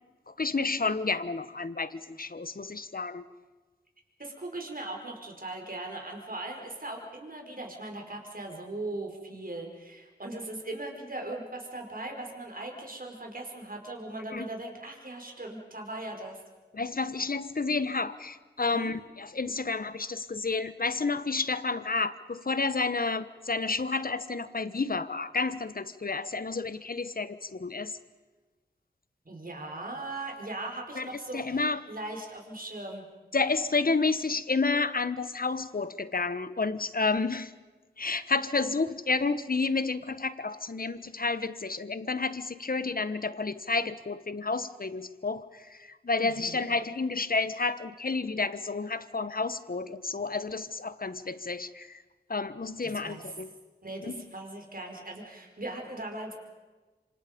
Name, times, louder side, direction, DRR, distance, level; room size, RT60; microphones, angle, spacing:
voice 1, 0.4-3.2 14.3-14.5 16.7-28.0 30.9-31.1 31.3-31.8 33.3-37.5 38.0-52.0 52.3-53.5 54.1-54.2, left 4 dB, 50° left, 13 dB, 1.2 m, -30 dB
voice 2, 4.2-16.4 18.7-18.9 29.2-33.1 46.2-46.7 52.8-53.3 53.8-56.4, right 2 dB, 50° right, 1 dB, 5.1 m, -39 dB
26.5 x 26.5 x 5.3 m, 1.2 s
cardioid pair, 40°, 18 cm